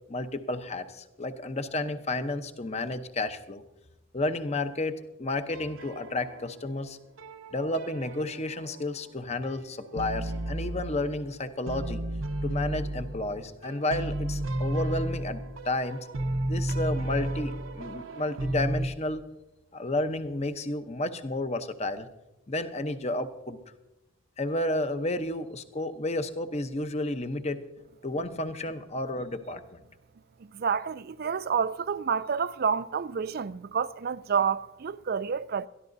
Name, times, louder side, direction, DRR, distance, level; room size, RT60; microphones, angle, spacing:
voice 1, 0.1-3.6 4.1-7.0 7.5-12.0 12.4-16.0 16.4-19.2 19.7-22.1 22.5-23.6 24.4-27.6 28.0-29.6, left 2 dB, 30° left, 0.8 m, -31 dB
sound 1, 5.5-6.7 7.2-9.1 9.4-11.4 11.7-18.9, right 1 dB, 70° right, 0.8 m, -33 dB
voice 2, 30.5-35.7, right 6 dB, 45° right, 0.4 m, -29 dB
22.0 x 13.5 x 2.6 m
head